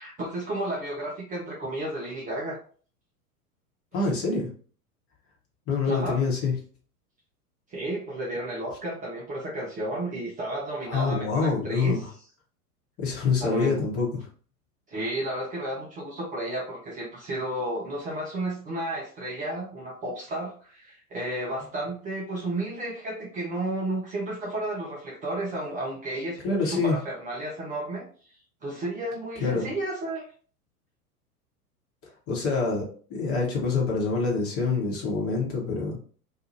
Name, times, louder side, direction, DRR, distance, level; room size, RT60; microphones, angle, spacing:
voice 1, 0.0-2.6 5.8-6.2 7.7-12.0 13.4-13.8 14.9-28.1 28.6-30.3, right 1 dB, 20° right, -4 dB, 0.6 m, -32 dB
voice 2, 3.9-4.5 5.7-6.5 10.9-12.1 13.0-14.3 26.4-27.0 29.4-29.7 32.3-36.0, left 4 dB, 30° left, -2 dB, 1.1 m, -26 dB
2.7 x 2.4 x 2.8 m, 0.43 s
figure-of-eight pair, 90°, 46 cm